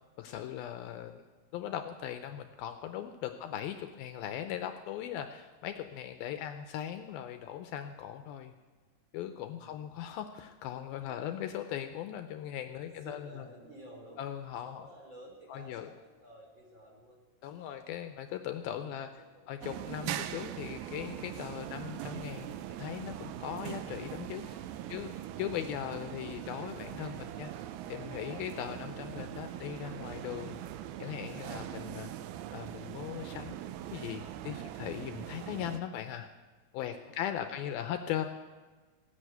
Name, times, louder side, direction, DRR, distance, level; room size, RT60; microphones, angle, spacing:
voice 1, 0.2-1.2 1.5-8.5 9.1-13.5 14.2-14.9 15.5-15.9 17.4-19.1 19.5-24.6 24.9-25.1 25.4-27.5 27.9-30.6 31.0-32.1 32.5-33.6 33.9-36.3 36.7-38.3, left 10 dB, 80° left, 7 dB, 2.3 m, -39 dB
voice 2, 3.3-3.7 9.3-9.8 11.1-11.4 12.8-18.1 18.7-19.5 24.5-25.9 36.8-37.8, right 1 dB, 30° right, -1 dB, 3.6 m, -55 dB
sound 1, 19.6-35.8, right 12 dB, 85° right, 2.5 m, -41 dB
16.0 x 9.8 x 8.0 m, 1.3 s
omnidirectional pair, 4.6 m